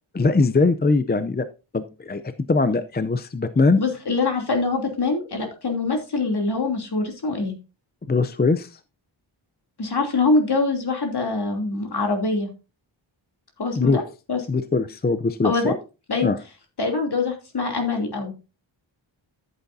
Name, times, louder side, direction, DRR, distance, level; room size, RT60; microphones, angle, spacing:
voice 1, 0.1-1.5 1.7-2.2 2.5-3.8 8.0-8.8 13.7-14.0 14.5-15.7 16.2-16.4, left 3 dB, 20° left, 11 dB, 0.5 m, -21 dB
voice 2, 3.8-7.5 9.8-12.5 13.6-14.0 14.3-14.4 15.4-15.7 16.1-16.3 16.8-18.3, left 3 dB, 55° left, 3 dB, 3.0 m, -24 dB
14.0 x 8.2 x 2.7 m, 0.30 s
wide cardioid pair, 130°, 47 cm